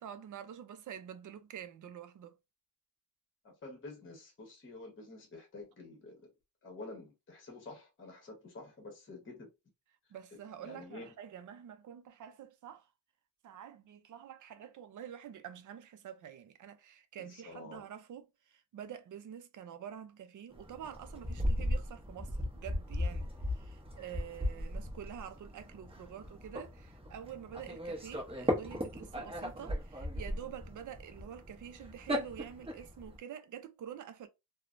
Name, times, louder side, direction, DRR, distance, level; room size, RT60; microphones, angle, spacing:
voice 1, 0.0-2.3 10.1-12.9 13.4-34.3, right 9 dB, 50° right, 0.4 m, -47 dB
voice 2, 3.4-6.3 6.6-9.5 10.6-11.1 17.2-17.8, left 2 dB, 30° left, 0.9 m, -49 dB
sound 1, 20.5-33.1, equal, 15° right, 0.7 m, -37 dB
3.1 x 2.1 x 2.5 m
wide cardioid pair, 160°, 40 cm